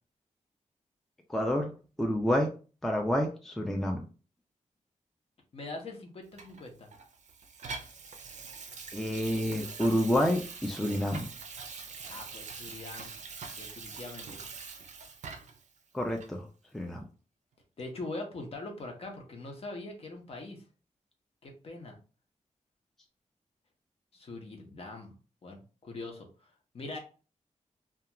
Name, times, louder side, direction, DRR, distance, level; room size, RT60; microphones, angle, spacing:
voice 1, 1.3-1.7 2.0-2.5 2.8-4.0 8.9-11.2 15.9-16.4 16.7-17.0, equal, ahead, 3 dB, 0.3 m, -28 dB
voice 2, 5.5-6.9 12.1-13.1 13.5-14.4 17.8-20.6 21.4-22.0 24.1-25.2 25.4-26.3 26.7-27.0, left 2 dB, 50° left, 2 dB, 0.7 m, -42 dB
Water tap faucet / Sink (filling or washing), 6.4-15.7 16.2-16.3, right 5 dB, 70° right, 0.4 m, -44 dB
2.3 x 2.3 x 2.8 m, 0.35 s
wide cardioid pair, 135°, 13 cm